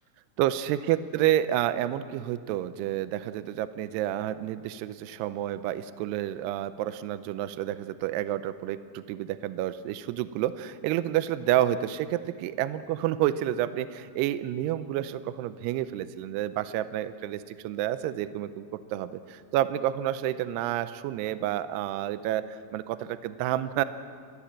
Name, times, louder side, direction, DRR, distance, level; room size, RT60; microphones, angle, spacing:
voice 1, 0.4-23.8, right 12 dB, 90° right, 13 dB, 2.4 m, -29 dB
29.0 x 13.5 x 7.4 m, 2.1 s
omnidirectional pair, 5.5 m